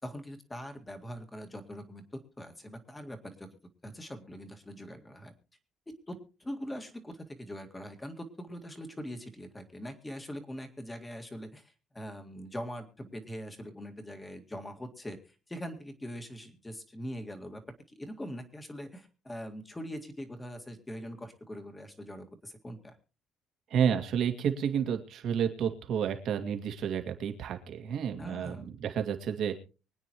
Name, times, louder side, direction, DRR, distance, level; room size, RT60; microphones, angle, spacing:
voice 1, 0.0-3.5 3.8-5.3 6.1-17.6 17.9-23.0 28.2-28.7, equal, 10° left, 5 dB, 2.0 m, -42 dB
voice 2, 23.7-29.6, right 8 dB, 60° right, 6 dB, 2.1 m, -30 dB
24.0 x 9.4 x 3.1 m, 0.33 s
cardioid pair, 125°, 0 cm